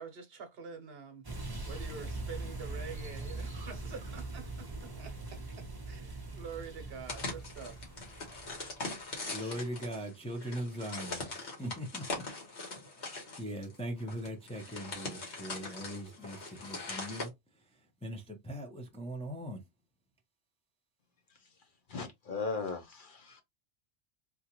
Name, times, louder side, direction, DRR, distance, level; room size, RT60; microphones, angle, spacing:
voice 1, 0.0-8.0, right 5 dB, 65° right, 1.0 m, -47 dB
sound 1, 1.2-9.1, right 2 dB, 25° right, 0.8 m, -42 dB
sound 2, 7.1-17.3, left 3 dB, 90° left, 1.6 m, -41 dB
voice 2, 9.3-12.2 12.9-19.6, equal, 10° left, 0.5 m, -41 dB
voice 3, 21.9-23.4, left 4 dB, 55° left, 0.8 m, -37 dB
3.6 x 2.3 x 2.9 m
omnidirectional pair, 1.1 m